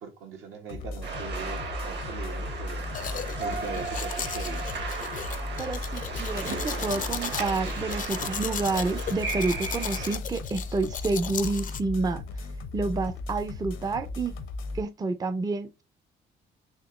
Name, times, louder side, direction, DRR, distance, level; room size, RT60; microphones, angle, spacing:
voice 1, 0.0-2.9 3.4-4.8, right 5 dB, 75° right, 1.3 m, -41 dB
sound 1, 0.7-14.8, left 2 dB, 85° left, 0.8 m, -36 dB
sound 2, 1.0-10.2, right 4 dB, 60° right, 1.5 m, -36 dB
Domestic sounds home sounds, 2.9-11.8, left 8 dB, 40° left, 0.4 m, -36 dB
voice 2, 5.6-12.2 12.7-14.4 14.7-15.8, right 3 dB, 20° right, 0.5 m, -29 dB
4.2 x 3.0 x 3.0 m
cardioid pair, 90°, 20 cm